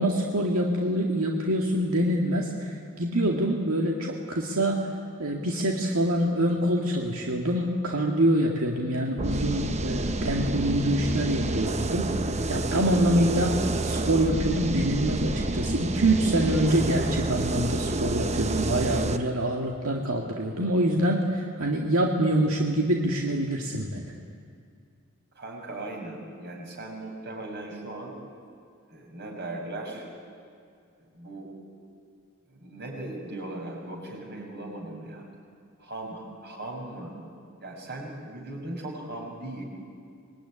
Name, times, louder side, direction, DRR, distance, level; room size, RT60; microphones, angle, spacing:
voice 1, 0.0-4.9 5.2-24.1, right 1 dB, 85° right, 0 dB, 2.1 m, -25 dB
sound 1, 9.2-19.2, right 2 dB, 30° right, 1.0 m, -28 dB
voice 2, 25.3-28.2 28.9-30.1 31.0-31.5 32.4-35.3 35.8-37.1 37.6-39.6, right 2 dB, 50° right, 0 dB, 6.7 m, -38 dB
25.5 x 21.5 x 10.0 m, 2.3 s
head